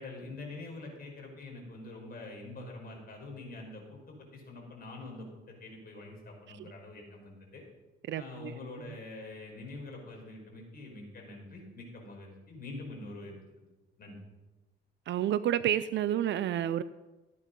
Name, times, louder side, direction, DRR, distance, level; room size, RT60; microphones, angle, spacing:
voice 1, 0.0-7.6 8.1-13.3 14.0-14.1, left 2 dB, 50° left, 0 dB, 5.1 m, -45 dB
voice 2, 8.1-8.5 15.1-16.8, right 11 dB, 65° right, 15 dB, 0.5 m, -30 dB
15.0 x 9.6 x 5.4 m, 1.1 s
cardioid pair, 90°, 20 cm